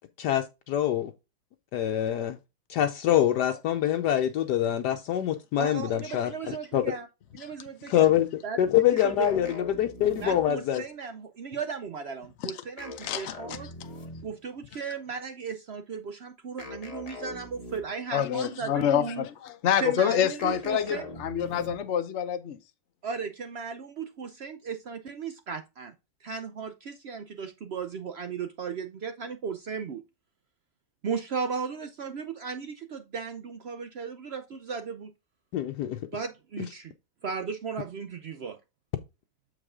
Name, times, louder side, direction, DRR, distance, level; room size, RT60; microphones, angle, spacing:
voice 1, 0.2-1.1 1.7-2.4 2.7-6.9 7.9-8.3 8.6-10.8 35.5-36.0, left 11 dB, 75° left, 1.2 m, -25 dB
voice 2, 5.6-7.1 7.3-8.2 8.4-8.6 9.0-9.5 10.2-13.7 14.2-19.2 19.8-21.1 23.0-25.9 26.2-30.0 31.0-35.1 36.1-36.9 37.2-38.6, right 5 dB, 80° right, 0.5 m, -36 dB
sound 1, 9.0-10.7 12.8-14.4 16.6-18.1 20.4-22.0, left 2 dB, 25° left, 1.0 m, -42 dB
voice 3, 13.0-14.0 18.1-22.6, left 9 dB, 60° left, 0.7 m, -27 dB
7.2 x 4.9 x 3.6 m
omnidirectional pair, 1.9 m